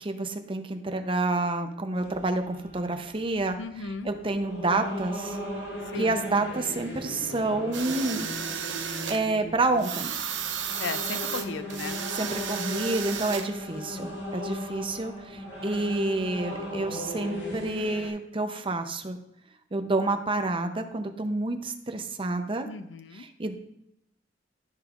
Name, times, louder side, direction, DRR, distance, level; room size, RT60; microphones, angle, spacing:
voice 1, 0.0-3.6 4.0-5.4 5.9-8.3 8.8-10.1 12.1-19.2 19.7-22.7 23.1-23.5, right 2 dB, 30° right, 6 dB, 0.7 m, -29 dB
sound 1, 2.0-18.1, left 1 dB, 65° left, 2.0 m, -38 dB
voice 2, 3.6-4.1 5.9-6.2 10.8-12.0 22.6-23.2, left 4 dB, 80° left, 12 dB, 0.5 m, -36 dB
sound 2, 7.7-9.2 9.8-13.5, right 8 dB, 85° right, 0.8 m, -33 dB
13.5 x 5.3 x 2.5 m, 0.79 s
head